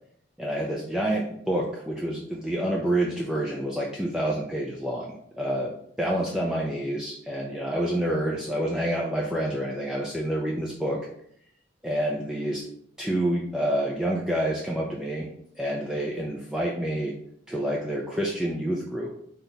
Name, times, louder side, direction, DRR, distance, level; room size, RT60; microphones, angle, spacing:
voice 1, 0.4-11.1 11.8-12.6 13.0-15.3 15.6-17.1 17.5-19.2, right 1 dB, 5° right, -3 dB, 0.5 m, -28 dB
3.9 x 3.4 x 4.0 m, 0.67 s
head